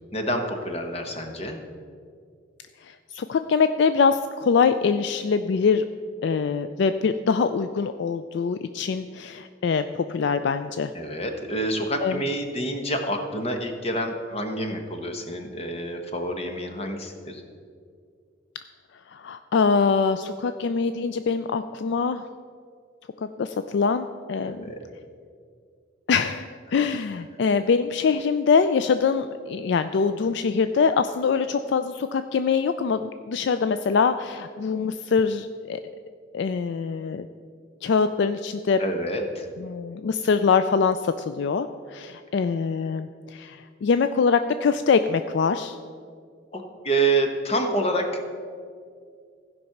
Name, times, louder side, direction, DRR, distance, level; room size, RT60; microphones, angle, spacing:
voice 1, 0.1-1.6 10.9-17.4 24.5-24.8 38.8-39.5 46.5-48.3, right 1 dB, 30° left, 4 dB, 1.1 m, -28 dB
voice 2, 2.8-5.9 6.2-10.9 12.0-12.2 19.1-22.2 23.2-24.6 26.1-35.8 36.3-37.3 37.8-38.8 39.6-45.8, left 5 dB, 60° left, 10 dB, 0.3 m, -24 dB
15.5 x 5.3 x 5.9 m, 2.2 s
head